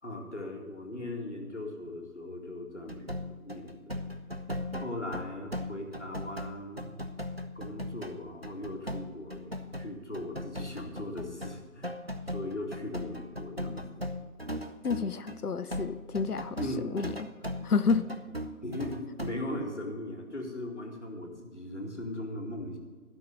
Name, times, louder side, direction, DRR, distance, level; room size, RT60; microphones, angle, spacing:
voice 1, 0.0-4.0 4.7-6.9 7.5-11.9 12.3-14.0 16.6-16.9 18.6-22.8, left 1 dB, 50° left, 1 dB, 2.2 m, -39 dB
sound 1, 2.9-15.4 15.7-19.5, left 1 dB, 45° right, 0.6 m, -38 dB
voice 2, 14.8-16.6 16.9-17.1 17.6-18.1, left 5 dB, 85° left, 14 dB, 0.7 m, -29 dB
12.0 x 6.4 x 8.0 m, 1.5 s
figure-of-eight pair, 175°, 44 cm